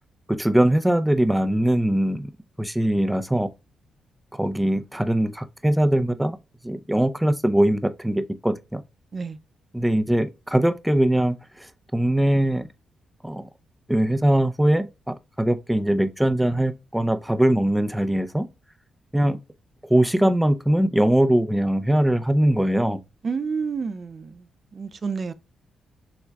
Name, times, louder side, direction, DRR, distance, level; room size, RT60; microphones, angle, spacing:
voice 1, 0.3-2.3 2.6-3.5 4.3-6.4 6.6-8.8 9.7-11.4 11.9-12.7 13.2-13.5 13.9-18.5 19.1-19.4 19.9-23.0, right 1 dB, 5° right, 0.6 m, -21 dB
voice 2, 23.2-24.5 24.7-25.3, right 5 dB, 45° right, 0.6 m, -29 dB
7.1 x 3.2 x 2.3 m
supercardioid pair, 60°, 0 cm